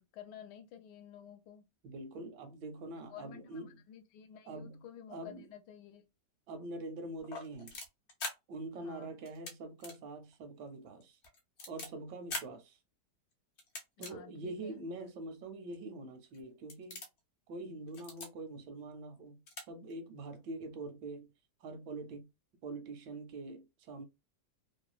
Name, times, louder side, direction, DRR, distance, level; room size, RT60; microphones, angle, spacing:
voice 1, 0.0-1.6 3.1-6.1 8.7-9.1 14.0-14.8, left 9 dB, 75° left, 1.1 m, -52 dB
voice 2, 1.8-3.8 4.5-5.5 6.5-7.7 8.5-11.2 11.7-12.8 14.0-17.0 17.5-21.3 21.6-22.3 22.6-24.0, right 2 dB, 80° right, 1.2 m, -44 dB
sound 1, 7.2-8.3 9.2-9.5 9.8-10.0 10.3-10.4 11.0-11.9 12.3-12.5 13.6-14.1 14.8-14.9 15.7-15.8 16.3-16.4 16.7-17.2 17.9-18.3 19.2-19.3 19.5-19.6 19.9-20.0, left 3 dB, 60° left, 0.7 m, -42 dB
3.1 x 2.1 x 2.3 m
omnidirectional pair, 1.9 m